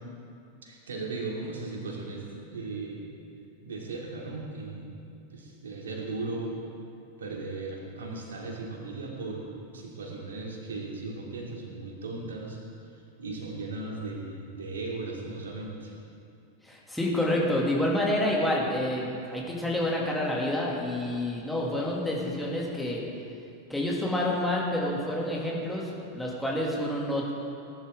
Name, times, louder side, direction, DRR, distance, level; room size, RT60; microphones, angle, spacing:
voice 1, 0.6-2.2 2.5-3.1 3.6-4.9 5.3-6.5 7.2-12.6 13.2-15.9, right 3 dB, 65° right, -2 dB, 2.9 m, -37 dB
voice 2, 16.6-23.1 23.7-27.3, left 1 dB, 5° left, -4 dB, 2.7 m, -28 dB
20.0 x 11.5 x 3.8 m, 2.5 s
figure-of-eight pair, 90°, 0 cm